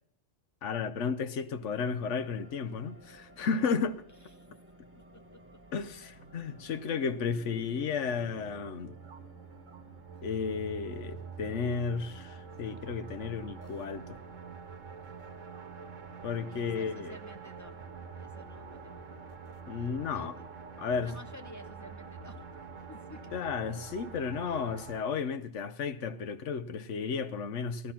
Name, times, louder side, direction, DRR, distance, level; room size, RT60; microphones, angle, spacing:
voice 1, 0.6-4.0 5.7-9.0 10.2-14.1 16.2-17.2 19.7-20.3 20.8-21.2 23.3-27.9, left 5 dB, 70° left, 1.1 m, -33 dB
sound 1, 1.9-18.5, right 1 dB, 10° right, 1.4 m, -58 dB
sound 2, 6.0-25.0, right 5 dB, 80° right, 1.3 m, -46 dB
voice 2, 16.5-19.1 20.1-20.4 21.0-22.4 22.9-23.5, equal, 15° left, 0.8 m, -51 dB
17.0 x 12.0 x 5.8 m
omnidirectional pair, 1.3 m